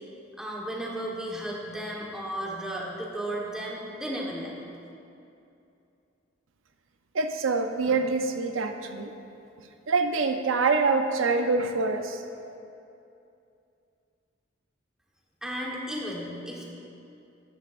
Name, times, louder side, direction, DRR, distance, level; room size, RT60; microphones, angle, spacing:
voice 1, 0.4-4.5 15.4-16.7, right 1 dB, 5° right, -3 dB, 1.3 m, -34 dB
voice 2, 7.1-9.1 9.9-12.2, right 4 dB, 85° right, 6 dB, 0.6 m, -25 dB
13.0 x 9.3 x 2.5 m, 2.7 s
head